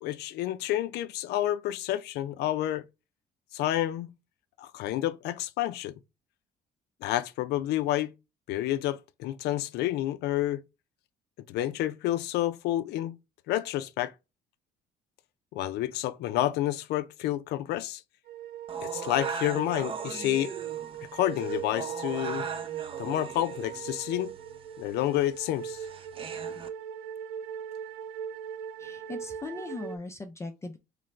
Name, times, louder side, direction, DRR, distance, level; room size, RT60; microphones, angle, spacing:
voice 1, 0.0-2.8 3.5-4.1 4.6-5.9 7.0-8.1 8.5-10.6 11.5-13.2 13.5-14.1 15.5-18.0 18.8-20.5 21.1-22.5 23.0-24.3 24.8-25.8, left 13 dB, 80° left, 0.5 m, -29 dB
sound 1, 18.3-30.0, right 10 dB, 90° right, 0.4 m, -39 dB
sound 2, 18.7-26.7, right 5 dB, 30° right, 0.5 m, -40 dB
voice 2, 28.8-30.8, left 3 dB, 15° left, 0.4 m, -39 dB
3.8 x 3.2 x 3.2 m
cardioid pair, 110°, 17 cm